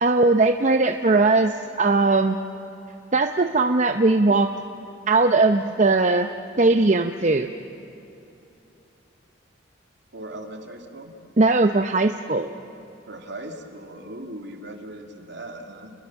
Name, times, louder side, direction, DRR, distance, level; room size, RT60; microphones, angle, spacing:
voice 1, 0.0-2.4 3.1-4.5 5.1-6.3 6.6-7.5 11.4-12.5, right 3 dB, 35° right, 6 dB, 0.7 m, -19 dB
voice 2, 10.1-11.1 13.1-15.9, right 1 dB, 60° right, 4 dB, 2.5 m, -38 dB
30.0 x 21.5 x 7.2 m, 2.9 s
head